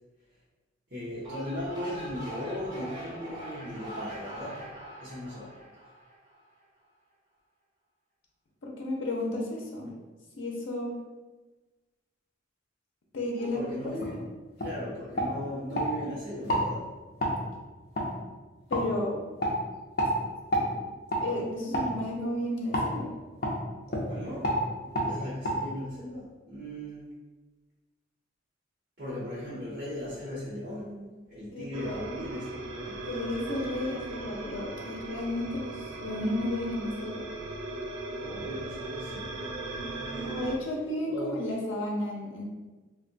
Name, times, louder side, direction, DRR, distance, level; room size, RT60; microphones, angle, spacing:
voice 1, 0.9-4.7 5.0-5.5 13.4-14.2 14.6-16.9 24.1-24.6 24.8-27.1 29.0-33.0 38.2-39.4 40.0-40.5 41.1-41.5, equal, 50° right, -12 dB, 0.8 m, -38 dB
sound 1, 1.1-6.4, right 1 dB, 20° right, 0.8 m, -42 dB
voice 2, 8.6-10.0 10.4-10.9 13.1-13.6 14.1-14.2 18.7-19.2 21.2-23.1 31.5-32.0 33.1-37.2 40.2-42.4, left 1 dB, 85° left, -2 dB, 0.6 m, -33 dB
sound 2, 14.0-14.1 14.6-14.7 15.1-15.9 16.4-16.6 17.2-17.3 17.9-18.1 18.7-18.8 19.4-19.5 20.0-20.1 20.5-20.7 21.1-21.2 21.7-21.9 22.7-22.9 23.4-23.6 23.9-24.1 24.4-24.6 24.9-25.1 25.4-25.5, equal, 50° left, 0.7 m, -28 dB
sound 3, 31.7-40.6, right 2 dB, 80° right, 0.4 m, -38 dB
2.5 x 2.3 x 3.9 m, 1.2 s
head